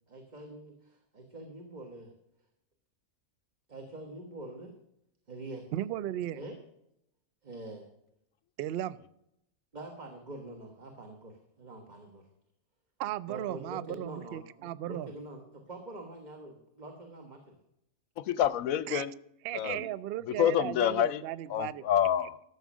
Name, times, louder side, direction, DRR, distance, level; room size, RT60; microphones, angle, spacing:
voice 1, 0.1-2.1 3.7-4.7 5.3-5.6 6.3-6.6 7.4-7.8 9.7-12.3 13.3-17.6 19.5-19.7, right 2 dB, 30° right, 3 dB, 1.4 m, -45 dB
voice 2, 5.7-6.4 8.6-9.0 13.0-15.1 18.9-19.0 19.4-21.8, right 13 dB, 80° right, 18 dB, 0.5 m, -36 dB
voice 3, 18.2-19.1 19.5-19.9 20.3-21.2 21.5-22.4, left 10 dB, 75° left, 17 dB, 1.0 m, -27 dB
13.0 x 7.2 x 6.1 m, 0.80 s
omnidirectional pair, 1.5 m